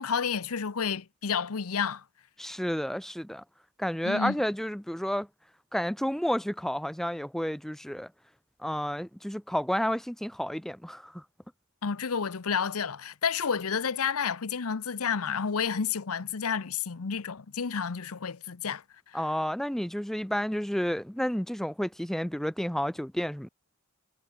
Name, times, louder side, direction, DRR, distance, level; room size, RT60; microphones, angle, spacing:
voice 1, 0.0-2.0 4.0-4.4 11.8-18.8, left 6 dB, 85° left, 0.8 m, -30 dB
voice 2, 2.4-3.4 3.8-5.3 5.7-8.1 8.6-11.2 19.1-23.5, equal, ahead, 0.5 m, -31 dB
head